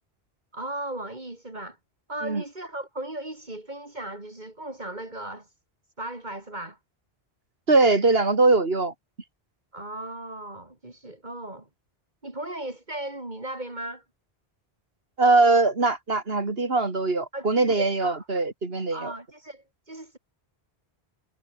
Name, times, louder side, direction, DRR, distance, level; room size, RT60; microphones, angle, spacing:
voice 1, 0.5-1.8 2.1-5.5 6.0-6.8 9.7-11.7 12.2-14.0 17.3-17.5 17.8-18.2 18.9-20.2, right 1 dB, 45° right, 3.4 m, -36 dB
voice 2, 7.7-8.9 15.2-19.1, right 3 dB, 65° right, 2.7 m, -21 dB
omnidirectional pair, 1.1 m